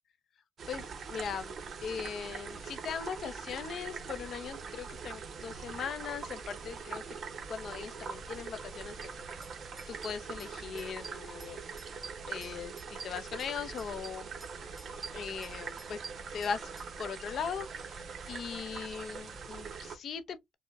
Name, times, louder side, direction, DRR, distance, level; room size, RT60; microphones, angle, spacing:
sound 1, 0.6-20.0, right 5 dB, 55° right, 0.8 m, -43 dB
voice 1, 0.7-1.5 1.8-7.0 7.5-9.1 9.9-11.6 12.3-14.3 15.1-16.0 16.3-16.7 17.0-18.0 18.3-20.5, left 7 dB, 60° left, 0.5 m, -39 dB
sound 2, 9.0-9.1 9.4-9.5 9.8-10.5 10.8-11.5 11.8-13.5 13.8-14.5 14.8-16.9, right 5 dB, 30° right, 1.3 m, -48 dB
4.6 x 2.1 x 2.3 m
cardioid pair, 90°, 0 cm